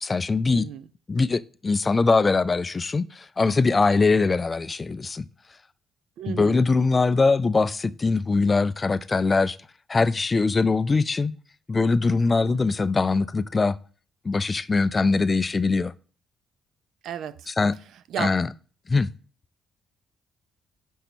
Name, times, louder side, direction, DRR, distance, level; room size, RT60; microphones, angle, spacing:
voice 1, 0.0-0.7 1.1-5.3 6.3-9.6 9.9-11.3 11.7-13.8 14.2-15.9 17.5-17.8 18.2-18.5 18.9-19.1, left 4 dB, 30° left, 0.4 m, -22 dB
voice 2, 0.5-0.9 6.2-6.6 12.4-12.7 17.0-17.5 18.1-18.3, right 10 dB, 75° right, 0.4 m, -34 dB
5.4 x 5.1 x 4.4 m
cardioid pair, 90°, 0 cm